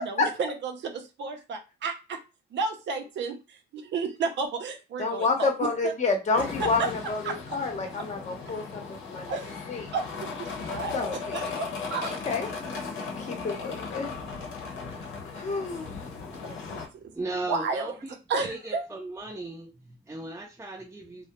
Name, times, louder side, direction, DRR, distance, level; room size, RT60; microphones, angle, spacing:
voice 1, 0.1-2.2 2.5-5.9 6.4-6.9 7.2-7.4 8.0-8.1 9.3-9.6 9.9-12.1 16.4-17.1 17.5-17.9 18.3-18.9, right 4 dB, 65° right, 0.6 m, -32 dB
voice 2, 5.0-8.8 9.1-9.3 9.7-9.8 10.9-11.6 12.2-12.5 13.2-14.1 15.3-15.9, left 4 dB, 35° left, 0.8 m, -29 dB
sound 1, 6.3-16.9, left 4 dB, 75° left, 0.8 m, -37 dB
voice 3, 17.1-21.3, right 2 dB, 15° right, 0.6 m, -37 dB
2.3 x 2.1 x 2.9 m
cardioid pair, 90°, 20 cm